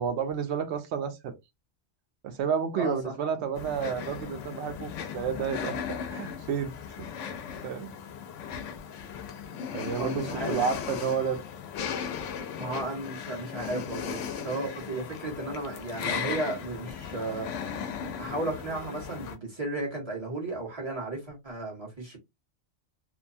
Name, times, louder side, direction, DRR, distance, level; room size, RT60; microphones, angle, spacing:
voice 1, 0.0-1.3 2.2-6.7 7.0-7.9 9.7-11.4, right 7 dB, 70° right, 0.9 m, -31 dB
voice 2, 2.7-3.1 9.9-10.6 12.6-17.5 18.2-22.2, right 2 dB, 25° right, 1.2 m, -34 dB
sound 1, 3.5-19.4, left 7 dB, 90° left, 0.9 m, -37 dB
2.8 x 2.1 x 2.5 m
omnidirectional pair, 1.2 m